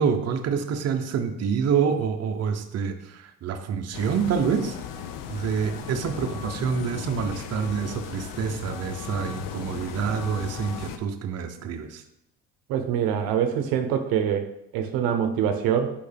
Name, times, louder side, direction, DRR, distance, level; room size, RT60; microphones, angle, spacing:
voice 1, 0.0-4.7 5.3-12.0, right 6 dB, 45° right, 5 dB, 0.8 m, -27 dB
sound 1, 3.9-11.0, left 8 dB, 65° left, 0.7 m, -36 dB
voice 2, 12.7-15.9, right 8 dB, 75° right, 6 dB, 0.8 m, -25 dB
6.3 x 5.6 x 3.4 m, 0.82 s
supercardioid pair, 95°, 35 cm